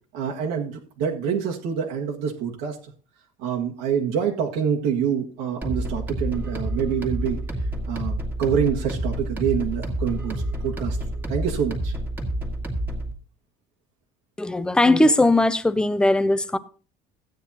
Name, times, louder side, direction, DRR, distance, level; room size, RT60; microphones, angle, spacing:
voice 1, 0.1-2.8 3.4-7.4 7.9-11.0 11.3-11.9, right 7 dB, 80° right, 1.7 m, -26 dB
sound 1, 5.6-13.1, right 1 dB, 10° right, 1.9 m, -29 dB
voice 2, 14.4-16.6, left 2 dB, 5° left, 0.5 m, -19 dB
15.0 x 9.1 x 2.8 m
cardioid pair, 155°, 17 cm